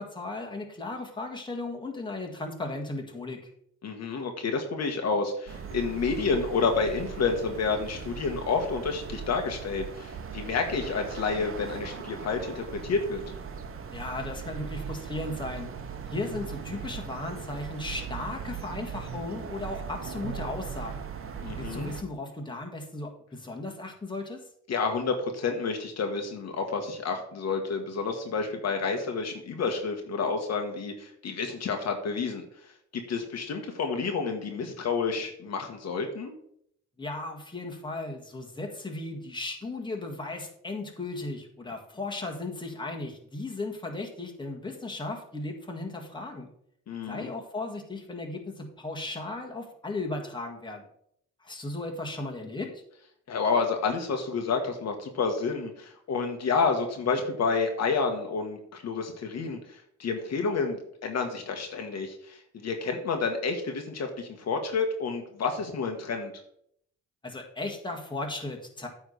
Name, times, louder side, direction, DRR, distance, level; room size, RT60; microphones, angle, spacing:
voice 1, 0.0-3.4 13.9-15.7 16.1-21.0 21.6-24.4 37.0-46.5 47.1-50.8 51.4-52.7 67.2-68.9, left 2 dB, 15° left, 2 dB, 1.8 m, -36 dB
voice 2, 3.8-13.2 21.4-21.9 24.7-32.4 32.9-36.3 46.9-47.3 53.3-66.3, left 4 dB, 60° left, 4 dB, 1.4 m, -29 dB
sound 1, 5.5-22.0, right 6 dB, 45° right, 1.1 m, -39 dB
9.2 x 3.6 x 6.6 m, 0.68 s
cardioid pair, 90°, 30 cm